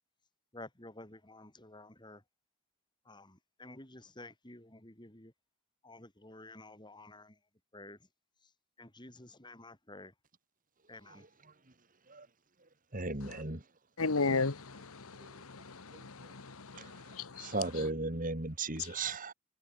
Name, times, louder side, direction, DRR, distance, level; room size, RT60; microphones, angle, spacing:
voice 1, 0.5-2.2 3.1-5.3 5.8-7.4 7.7-8.0 8.8-10.1 10.9-11.2, left 2 dB, 20° left, 4.0 m, -51 dB
voice 2, 12.9-13.6 16.8-16.9 17.4-19.3, right 3 dB, 35° right, 2.5 m, -35 dB
voice 3, 14.0-17.6 18.8-18.9, left 3 dB, 70° left, 1.3 m, -35 dB
head